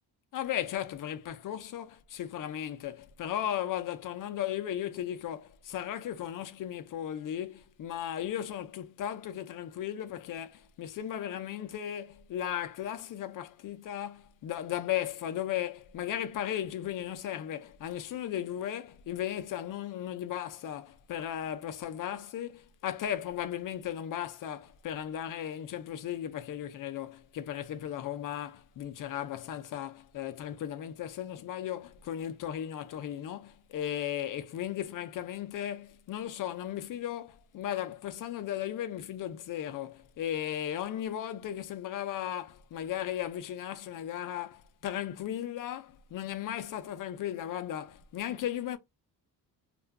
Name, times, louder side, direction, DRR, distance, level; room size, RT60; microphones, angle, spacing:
voice 1, 0.3-48.8, left 11 dB, 55° left, 0.5 m, -36 dB
2.5 x 2.2 x 3.4 m
cardioid pair, 150°, 37 cm